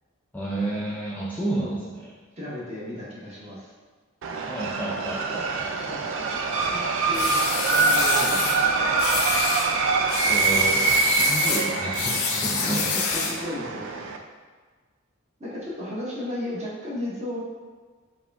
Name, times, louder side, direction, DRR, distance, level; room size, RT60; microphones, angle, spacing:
voice 1, 0.3-2.1 4.4-6.0 10.3-12.9, right 1 dB, 10° left, -7 dB, 0.4 m, -31 dB
voice 2, 1.5-1.8 2.4-3.7 5.8-6.1 6.6-8.9 10.5-10.9 12.5-14.0 15.4-17.4, left 1 dB, 30° right, -7 dB, 1.1 m, -35 dB
sound 1, 4.2-14.2, right 4 dB, 65° right, 0.4 m, -25 dB
sound 2, 7.1-8.6 9.0-9.7 10.1-13.4, left 5 dB, 80° left, 0.5 m, -27 dB
4.7 x 2.4 x 3.4 m, 1.5 s
head